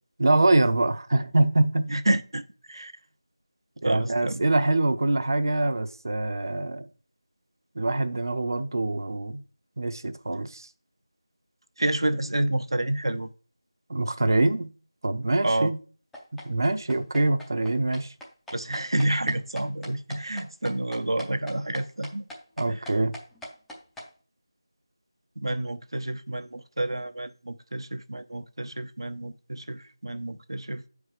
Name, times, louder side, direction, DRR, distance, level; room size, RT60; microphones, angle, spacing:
voice 1, 0.2-1.9 3.8-6.9 7.7-9.4 9.8-10.7 13.9-14.7 15.0-15.8 16.4-18.1 22.6-23.1, right 2 dB, 50° right, 0.8 m, -24 dB
voice 2, 1.9-2.4 2.7-2.9 3.8-4.5 11.8-13.3 15.4-15.7 18.5-22.2 22.7-22.8 25.4-30.8, right 1 dB, 75° right, 0.9 m, -29 dB
sound 1, 16.1-24.1, equal, ahead, 0.6 m, -42 dB
8.5 x 4.8 x 6.5 m
figure-of-eight pair, 170°, 3 cm